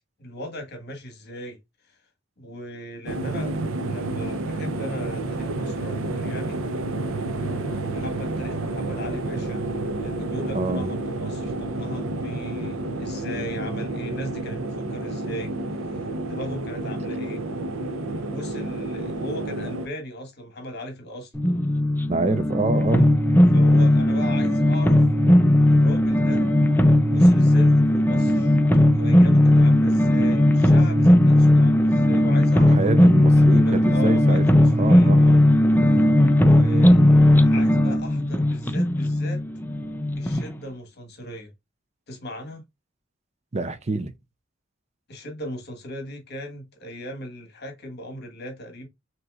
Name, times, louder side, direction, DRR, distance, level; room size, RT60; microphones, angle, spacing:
voice 1, 0.2-1.6 1.9-2.0 2.4-3.6 3.9-6.6 7.3-9.6 10.0-15.5 15.8-17.4 18.2-21.3 23.0-23.1 23.5-25.0 25.7-26.5 27.1-28.6 28.9-33.1 33.4-35.4 36.4-37.2 37.4-39.4 40.1-41.5 42.1-42.6 45.1-48.9, equal, 55° left, 1.5 m, -38 dB
sound 1, 3.1-19.9, right 2 dB, 80° right, 0.7 m, -30 dB
voice 2, 10.5-10.9 22.1-23.1 32.7-35.3 43.5-44.1, right 3 dB, 35° right, 0.6 m, -26 dB
sound 2, 21.3-40.5, left 1 dB, 10° left, 0.5 m, -17 dB
6.7 x 3.0 x 2.4 m
head